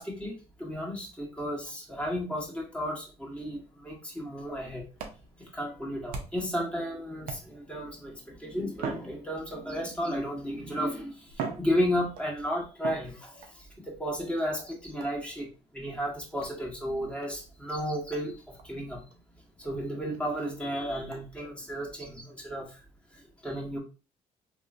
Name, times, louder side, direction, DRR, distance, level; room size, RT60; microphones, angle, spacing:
voice 1, 0.0-4.9 5.4-15.5 15.7-19.0 19.6-22.7 23.4-23.8, equal, 10° left, -2 dB, 1.5 m, -33 dB
sound 1, 5.0-6.6 7.2-7.8 8.7-9.8 10.7-10.8 11.3-12.4 12.8-13.6 15.0-15.3 16.4-16.6 17.2-17.3 17.7-17.8 18.1-18.3 18.6-18.7 19.1-19.2 19.6-19.7 20.1-20.2 21.1-21.2, right 6 dB, 80° right, 0.7 m, -41 dB
3.6 x 3.0 x 2.5 m, 0.33 s
supercardioid pair, 60°, 14 cm